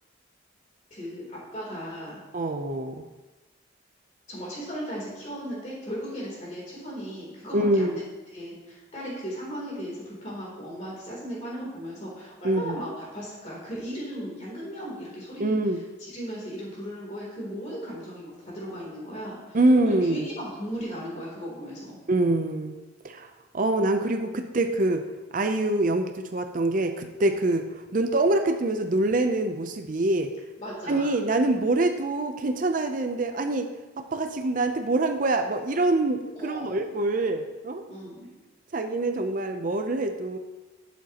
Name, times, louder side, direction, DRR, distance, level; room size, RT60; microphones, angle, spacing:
voice 1, 0.9-2.2 4.3-8.0 8.3-15.6 16.0-22.0 30.6-31.1 36.3-36.8 37.9-38.3, equal, 35° left, -5 dB, 3.1 m, -37 dB
voice 2, 2.3-3.0 7.5-7.9 12.4-12.8 15.4-15.8 19.5-20.3 22.1-22.7 23.0-25.0 25.3-30.3 30.9-33.7 34.0-37.8 38.7-40.4, right 2 dB, 45° right, 6 dB, 0.5 m, -25 dB
11.5 x 7.3 x 2.9 m, 1.1 s
head